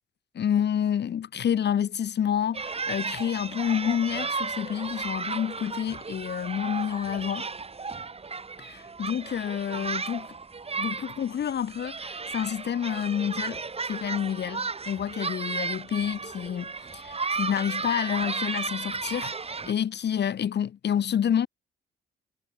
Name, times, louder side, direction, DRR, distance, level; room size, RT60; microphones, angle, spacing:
voice 1, 0.3-7.5 8.6-10.3 10.8-13.6 13.9-16.7 16.9-19.3 19.6-21.5, left 9 dB, 60° left, 4.3 m, -28 dB
sound 1, 2.5-19.7, right 4 dB, 30° right, 6.8 m, -34 dB
cardioid pair, 90°, 20 cm